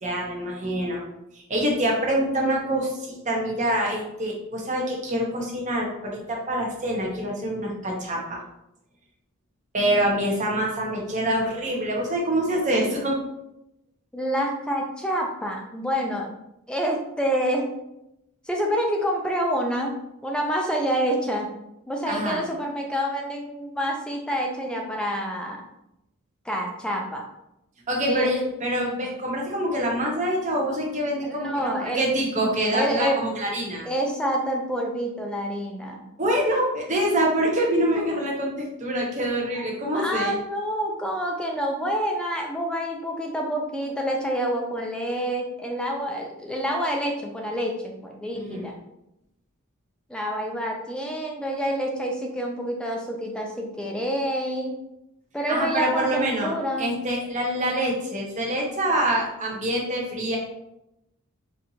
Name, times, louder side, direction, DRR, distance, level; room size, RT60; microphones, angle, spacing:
voice 1, 0.0-1.0 1.3-8.4 9.7-13.2 22.1-22.4 27.9-33.9 36.2-40.3 48.3-48.7 55.5-60.4, right 1 dB, 35° right, -1 dB, 0.8 m, -25 dB
voice 2, 14.1-16.3 16.7-17.7 18.4-19.9 20.2-21.5 21.9-25.6 26.5-27.3 28.1-28.3 31.2-32.4 32.7-33.2 33.8-36.0 39.6-39.7 39.9-48.8 50.1-54.8 55.3-56.9, equal, 5° left, 0 dB, 0.4 m, -27 dB
4.3 x 2.5 x 2.8 m, 0.85 s
head